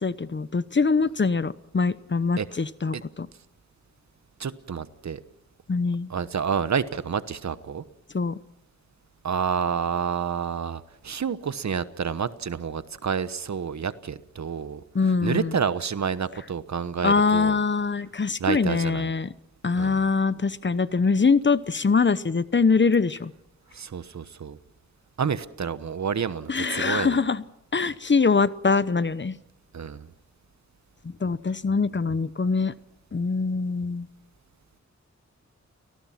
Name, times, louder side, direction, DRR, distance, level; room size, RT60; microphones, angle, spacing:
voice 1, 0.0-3.3 5.7-6.1 8.1-8.4 14.9-15.5 17.0-19.3 19.6-23.3 26.5-27.4 27.7-29.3 31.2-32.7 33.1-34.1, left 4 dB, 40° left, 16 dB, 0.9 m, -23 dB
voice 2, 4.4-5.2 6.1-7.8 9.2-14.8 15.2-17.6 18.4-19.1 19.7-20.0 23.7-24.6 25.2-27.2 29.7-30.1, right 6 dB, 70° right, 14 dB, 1.1 m, -29 dB
29.5 x 19.0 x 5.9 m, 0.79 s
cardioid pair, 60°, 29 cm